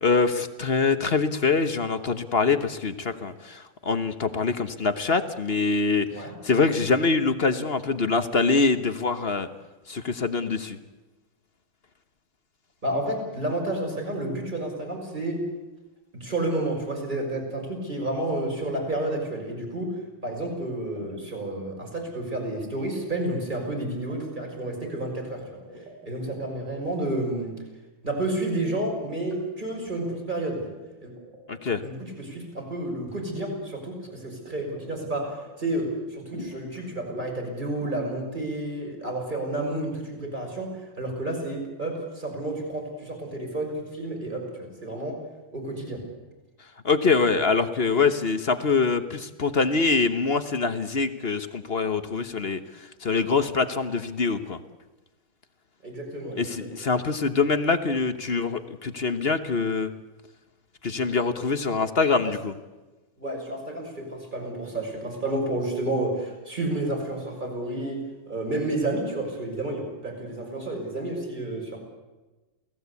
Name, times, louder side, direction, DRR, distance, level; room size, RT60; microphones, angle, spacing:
voice 1, 0.0-9.5 9.9-10.8 31.5-31.8 46.8-52.6 53.0-54.6 56.4-59.9 60.8-62.5, left 4 dB, 40° left, 10 dB, 1.0 m, -24 dB
voice 2, 12.8-15.4 16.1-19.9 20.2-25.4 26.1-27.5 28.0-30.7 31.0-31.1 31.8-40.7 41.0-45.2 45.5-46.0 55.8-56.8 62.2-62.3 63.2-71.8, right 1 dB, 25° right, 1 dB, 6.4 m, -30 dB
sound 1, 19.2-19.3 20.8-21.1 21.5-21.9 23.1-23.3 23.6-24.3 24.5-26.2 28.5-28.7 29.1-29.4 29.7-29.8 30.0-31.7 33.3-33.6 34.1-35.9 36.3-36.8 37.1-37.3 37.6-38.0, right 1 dB, 60° right, 5.9 m, -43 dB
28.5 x 18.5 x 8.3 m, 1.2 s
omnidirectional pair, 2.1 m